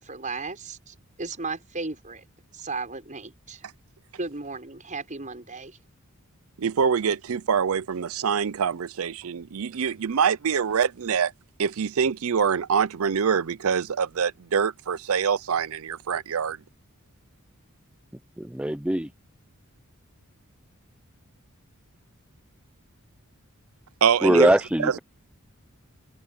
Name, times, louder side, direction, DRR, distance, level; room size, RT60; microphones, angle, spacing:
voice 1, 0.0-2.2 2.5-3.7 4.2-5.8, right 3 dB, 35° right, 6.0 m, -35 dB
voice 2, 6.6-11.3 11.6-16.6 24.0-24.5 24.8-25.0, right 6 dB, 70° right, 0.5 m, -25 dB
voice 3, 18.4-19.1 24.2-25.0, right 1 dB, 5° right, 0.7 m, -21 dB
head